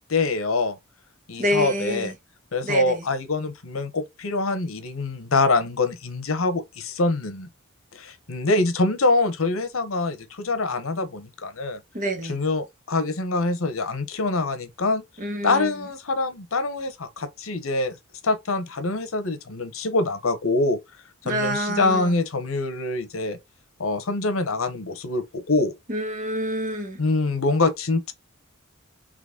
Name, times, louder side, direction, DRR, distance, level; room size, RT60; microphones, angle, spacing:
voice 1, 0.1-0.8 1.3-2.1 2.5-7.5 7.9-11.8 12.2-15.0 15.4-18.0 18.2-20.8 21.2-23.4 23.8-25.7 27.0-28.1, left 2 dB, 80° left, 0.9 m, -25 dB
voice 2, 1.4-2.1 2.6-3.0 11.9-12.4 15.2-15.7 21.2-22.1 25.9-27.0, equal, 40° right, 1.1 m, -27 dB
3.9 x 3.1 x 3.6 m
head